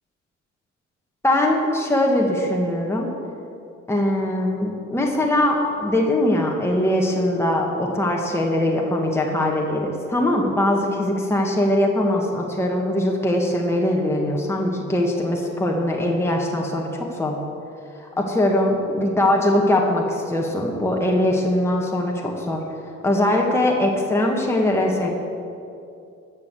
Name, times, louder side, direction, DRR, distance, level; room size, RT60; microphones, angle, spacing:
voice 1, 1.2-3.1 3.9-17.3 18.2-22.6 23.0-25.1, left 1 dB, 10° left, -1 dB, 1.6 m, -21 dB
14.0 x 6.6 x 8.2 m, 2.6 s
cardioid pair, 90°, 30 cm